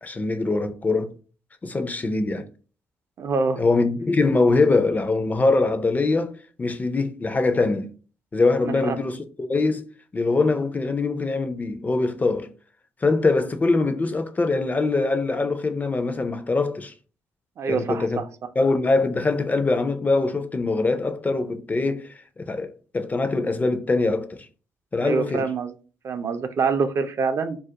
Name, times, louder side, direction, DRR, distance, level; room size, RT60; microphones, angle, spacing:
voice 1, 0.0-1.1 1.6-2.5 3.6-7.9 8.3-9.9 10.1-12.5 13.0-16.9 17.7-18.2 18.6-24.5 24.9-25.5, left 3 dB, 25° left, 0.4 m, -23 dB
voice 2, 3.2-3.6 8.6-9.0 17.6-18.2 25.0-25.7 26.0-27.6, right 5 dB, 50° right, 0.3 m, -25 dB
2.3 x 2.0 x 2.7 m
hypercardioid pair, 50°, 6 cm